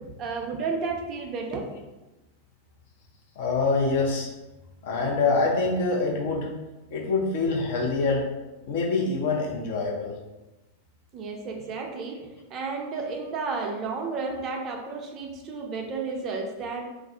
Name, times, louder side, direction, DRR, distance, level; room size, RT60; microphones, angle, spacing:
voice 1, 0.0-1.8 11.1-16.8, right 4 dB, 35° right, 2 dB, 0.4 m, -32 dB
voice 2, 3.4-4.3 4.8-6.5 6.9-8.2 8.7-10.1, left 3 dB, 50° left, -2 dB, 0.6 m, -25 dB
2.4 x 2.0 x 3.5 m, 1.1 s
figure-of-eight pair, 90°, 0 cm